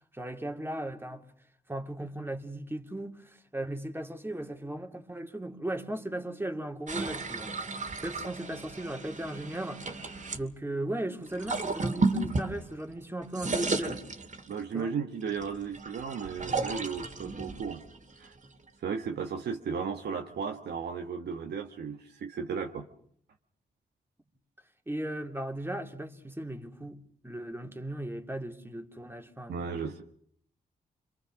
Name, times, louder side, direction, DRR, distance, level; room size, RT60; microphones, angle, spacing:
voice 1, 0.1-1.2 1.7-7.5 8.0-10.1 10.3-14.0 14.7-14.9 24.9-29.5, right 1 dB, 15° right, 2.8 m, -37 dB
sound 1, 6.9-10.4 11.3-13.0 13.2-14.7 15.3-18.7, right 3 dB, 45° right, 2.6 m, -34 dB
voice 2, 14.5-17.8 18.2-18.3 18.8-22.9 29.5-30.0, right 6 dB, 75° right, 1.3 m, -35 dB
27.5 x 22.5 x 6.2 m
supercardioid pair, 50°, 17 cm